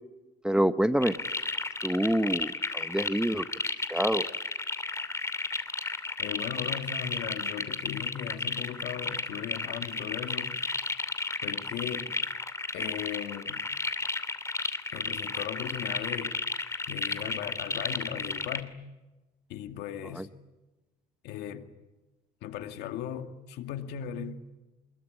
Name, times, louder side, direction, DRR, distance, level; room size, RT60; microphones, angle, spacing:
voice 1, 0.4-1.1 1.8-3.5 3.9-4.3 20.2-20.3, right 1 dB, 5° right, 0.9 m, -26 dB
sound 1, 1.0-18.6, left 3 dB, 15° left, 2.6 m, -33 dB
voice 2, 6.2-10.6 11.4-12.3 12.7-13.6 14.9-16.4 16.9-18.8 19.5-20.3 21.2-21.7 22.4-24.4, left 9 dB, 85° left, 2.2 m, -37 dB
26.5 x 21.5 x 9.9 m
cardioid pair, 110°, 17 cm